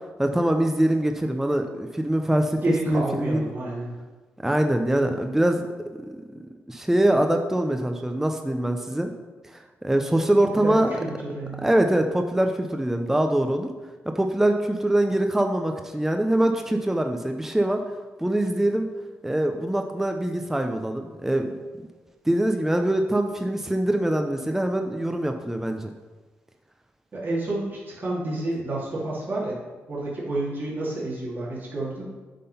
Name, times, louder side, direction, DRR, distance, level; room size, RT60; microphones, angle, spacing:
voice 1, 0.2-2.6 2.9-3.5 4.4-5.6 6.1-6.2 6.7-9.1 9.5-10.9 11.6-13.7 14.1-17.8 18.2-18.9 19.2-21.5 22.3-25.9, right 1 dB, 5° right, 5 dB, 0.6 m, -23 dB
voice 2, 2.6-4.0 10.6-11.7 27.1-29.6 29.9-32.0, right 2 dB, 40° right, -6 dB, 2.5 m, -29 dB
8.4 x 3.8 x 5.5 m, 1.3 s
cardioid pair, 75°, 5 cm